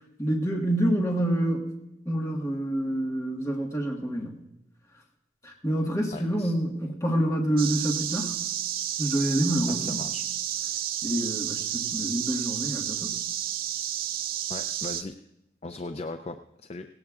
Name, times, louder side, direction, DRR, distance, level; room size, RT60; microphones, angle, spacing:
voice 1, 0.2-1.7 2.0-4.4 5.4-8.4 9.0-10.0 11.0-13.2, right 1 dB, 15° left, -1 dB, 1.5 m, -27 dB
voice 2, 6.1-6.5 9.7-10.2 14.5-15.1 15.6-16.9, left 2 dB, 35° left, 8 dB, 0.4 m, -38 dB
sound 1, 7.6-15.0, right 11 dB, 50° right, 0.5 m, -31 dB
18.0 x 17.5 x 2.4 m, 0.89 s
head